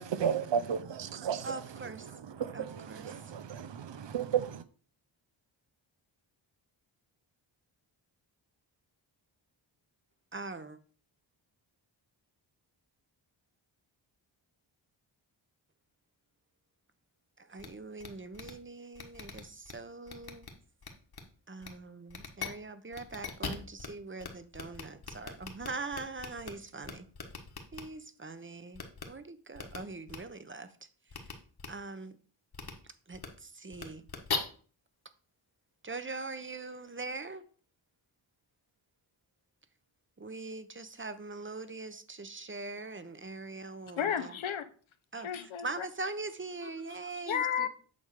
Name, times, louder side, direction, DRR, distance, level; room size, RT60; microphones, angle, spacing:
voice 1, 0.0-1.5 2.4-4.6, right 8 dB, 65° right, 0.8 m, -33 dB
voice 2, 1.4-2.1 2.5-3.2 10.3-10.8 17.4-20.5 21.5-27.1 27.7-30.7 31.7-32.2 33.1-34.1 35.8-37.4 40.2-44.3 45.1-45.3 45.6-47.7, right 3 dB, 25° right, 0.9 m, -42 dB
sound 1, 17.6-17.7 18.0-18.1 18.3-18.5 18.9-19.7 20.1-20.5 20.8-21.2 21.6-21.7 22.1-22.5 22.9-23.9 24.2-24.3 24.5-26.5 26.8-27.8 28.7-29.0 29.5-29.8 30.1-30.2 31.1-31.3 31.6-31.7 32.5-32.7 33.1-33.3 33.7-34.4, left 5 dB, 50° left, 1.6 m, -39 dB
voice 3, 44.0-44.7 45.1-45.9 46.6-47.0 47.3-47.7, left 8 dB, 80° left, 1.0 m, -33 dB
8.7 x 3.5 x 6.6 m
cardioid pair, 75°, 47 cm